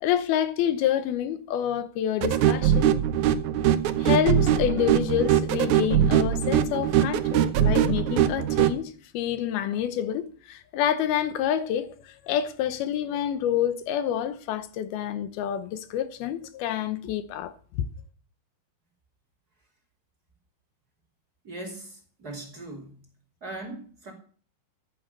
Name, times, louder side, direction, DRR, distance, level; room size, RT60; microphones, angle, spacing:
voice 1, 0.0-2.9 4.0-17.9, left 10 dB, 80° left, 2.8 m, -28 dB
sound 1, 2.2-8.8, right 10 dB, 70° right, 1.9 m, -22 dB
voice 2, 21.4-23.1 23.4-24.1, right 2 dB, 25° right, 3.1 m, -39 dB
14.5 x 10.0 x 6.7 m
omnidirectional pair, 4.4 m